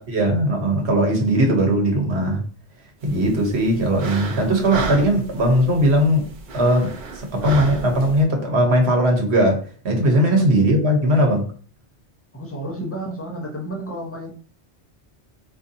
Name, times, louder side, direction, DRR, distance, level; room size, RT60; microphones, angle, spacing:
voice 1, 0.1-2.4 3.0-6.3 6.5-6.9 7.3-11.5, right 1 dB, 70° right, 1.3 m, -19 dB
sound 1, 3.0-8.2, right 3 dB, 55° right, 0.7 m, -32 dB
voice 2, 10.0-10.5 12.3-14.3, right 1 dB, 15° left, 0.8 m, -32 dB
4.2 x 2.7 x 2.6 m
omnidirectional pair, 1.1 m